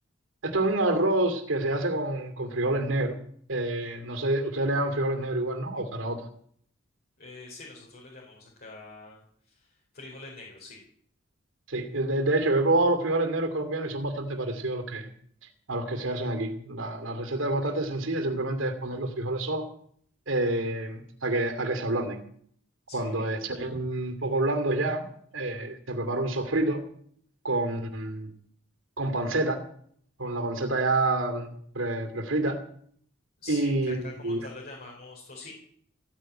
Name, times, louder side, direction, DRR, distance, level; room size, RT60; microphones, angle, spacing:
voice 1, 0.4-3.2 3.5-6.3 11.7-15.1 15.7-19.7 20.3-22.2 22.9-25.1 25.3-26.8 27.4-28.3 29.0-29.6 30.2-32.6 33.5-34.4, right 2 dB, 75° right, 8 dB, 2.5 m, -28 dB
voice 2, 7.2-10.8 22.9-23.2 33.4-35.5, left 3 dB, 50° left, -3 dB, 4.7 m, -45 dB
15.5 x 9.3 x 8.9 m, 0.62 s
head